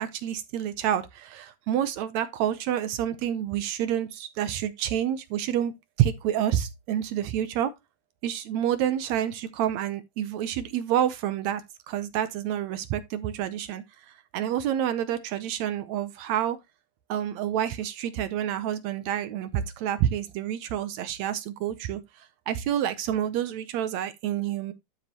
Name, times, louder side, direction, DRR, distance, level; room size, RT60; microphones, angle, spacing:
voice 1, 0.0-5.7 6.0-7.7 8.2-11.6 11.9-16.6 17.1-24.7, right 10 dB, 75° right, 1.9 m, -28 dB
12.0 x 5.1 x 2.9 m
omnidirectional pair, 3.5 m